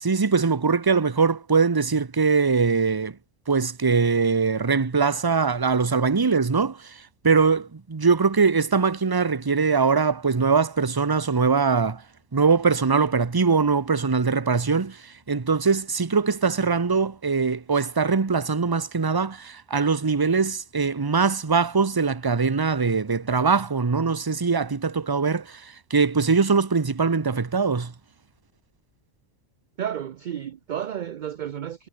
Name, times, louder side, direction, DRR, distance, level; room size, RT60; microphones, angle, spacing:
voice 1, 0.0-3.2 3.5-12.0 12.3-27.9, right 5 dB, 20° right, 0.7 m, -22 dB
voice 2, 29.8-31.9, right 9 dB, 55° right, 0.5 m, -32 dB
omnidirectional pair, 1.3 m